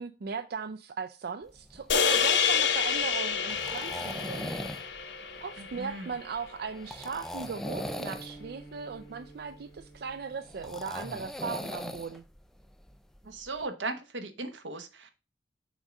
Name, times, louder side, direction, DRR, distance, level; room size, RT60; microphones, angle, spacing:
voice 1, 0.0-4.7 5.0-5.1 5.4-12.2, right 5 dB, 60° right, 0.4 m, -38 dB
sound 1, 1.5-13.6, equal, ahead, 0.5 m, -41 dB
sound 2, 1.9-6.3, left 7 dB, 80° left, 1.0 m, -28 dB
voice 2, 5.6-6.1 13.2-15.1, right 3 dB, 90° right, 1.0 m, -37 dB
sound 3, 7.6-11.6, right 2 dB, 30° left, 1.6 m, -49 dB
6.2 x 3.8 x 5.2 m
head